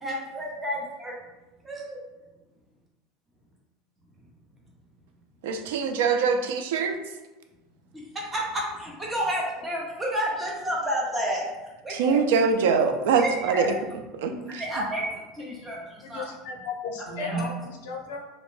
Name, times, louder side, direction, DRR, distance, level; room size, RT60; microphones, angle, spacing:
voice 1, 0.0-1.1 1.6-2.0 8.1-12.2 13.2-13.8 14.6-16.3 17.2-17.5, equal, 10° right, -2 dB, 0.5 m, -30 dB
voice 2, 5.4-7.0 11.9-13.7 14.2-14.8, right 5 dB, 85° right, 6 dB, 0.3 m, -24 dB
voice 3, 16.0-18.2, left 4 dB, 85° left, 1 dB, 0.4 m, -36 dB
2.5 x 2.1 x 3.1 m, 1.1 s
supercardioid pair, 180°, 0 cm